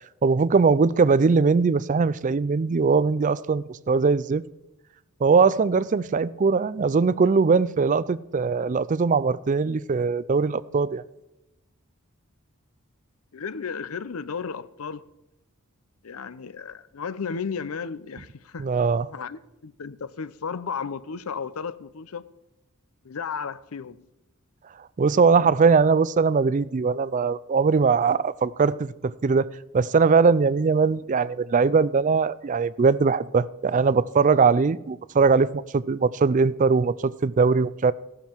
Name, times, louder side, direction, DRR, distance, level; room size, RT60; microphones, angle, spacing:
voice 1, 0.2-4.4 5.2-11.0 18.6-19.1 25.0-29.5 29.7-37.9, right 4 dB, 35° right, 0.4 m, -21 dB
voice 2, 13.3-15.1 16.0-18.7 19.1-22.2 23.0-24.1, left 6 dB, 75° left, 0.6 m, -34 dB
15.5 x 12.5 x 4.5 m
head